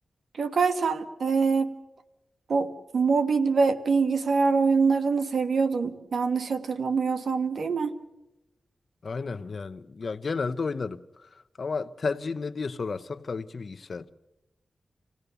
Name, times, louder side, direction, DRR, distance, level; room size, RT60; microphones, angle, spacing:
voice 1, 0.4-1.7 2.5-2.7 2.9-7.9, right 4 dB, 80° right, 1.4 m, -24 dB
voice 2, 9.0-14.1, left 4 dB, 55° left, 0.8 m, -32 dB
26.0 x 17.0 x 6.9 m
wide cardioid pair, 105°, 0 cm